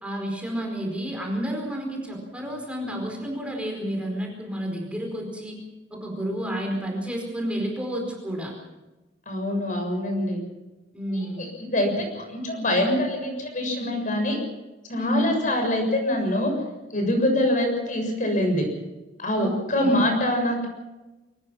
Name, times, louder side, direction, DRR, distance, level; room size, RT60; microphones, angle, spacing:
voice 1, 0.0-5.6 5.9-8.5 10.9-11.4 15.0-15.4 19.3-19.5 19.8-20.1, equal, 5° right, 0 dB, 4.6 m, -30 dB
voice 2, 9.3-10.4 11.1-11.5 11.7-14.4 14.9-16.5 16.9-18.7 19.2-20.7, left 1 dB, 45° left, 3 dB, 7.0 m, -24 dB
24.0 x 19.0 x 6.2 m, 1.1 s
head